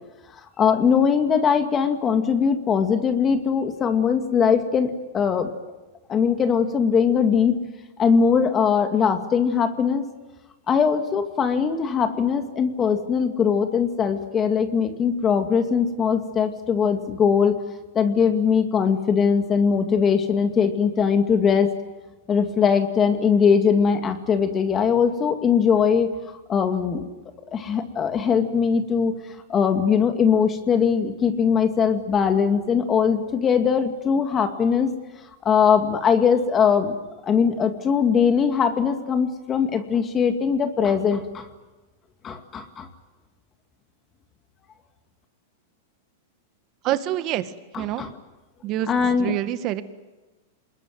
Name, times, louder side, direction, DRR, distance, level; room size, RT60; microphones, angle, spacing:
voice 1, 0.6-5.5 6.1-7.5 8.0-10.1 10.7-17.6 17.9-21.7 22.3-27.1 27.5-29.1 29.5-34.9 35.4-36.9 37.2-41.5 42.2-42.9 48.0-48.1 48.9-49.3, left 6 dB, 25° left, 6 dB, 2.3 m, -21 dB
voice 2, 46.8-48.0 48.6-48.9 49.2-49.8, right 13 dB, 40° right, 10 dB, 1.9 m, -26 dB
26.5 x 21.0 x 9.5 m, 1.2 s
hypercardioid pair, 130°, 0 cm